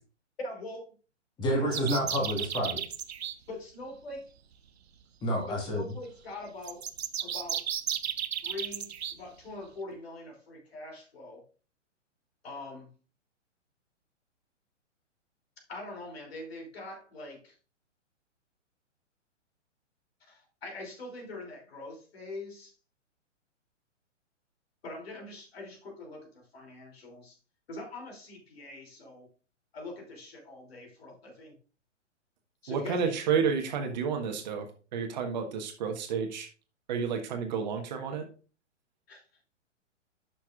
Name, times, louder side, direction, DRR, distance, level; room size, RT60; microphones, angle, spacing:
voice 1, 0.4-0.8 1.6-1.8 3.5-4.2 5.5-6.9 7.2-7.7 8.4-11.4 12.4-12.9 15.7-17.6 20.2-22.7 24.8-27.4 27.7-29.3 29.7-31.6 32.6-33.1 39.1-39.2, left 2 dB, 55° left, 2 dB, 2.9 m, -43 dB
voice 2, 1.4-2.8 5.2-5.9, equal, 10° left, -1 dB, 1.5 m, -29 dB
sound 1, 1.7-3.3 6.6-9.1, right 9 dB, 55° right, 0.7 m, -33 dB
voice 3, 32.7-34.7 34.9-36.5 36.9-38.2, right 6 dB, 35° right, 5 dB, 1.3 m, -30 dB
12.0 x 5.9 x 2.4 m, 0.35 s
figure-of-eight pair, 120°, 37 cm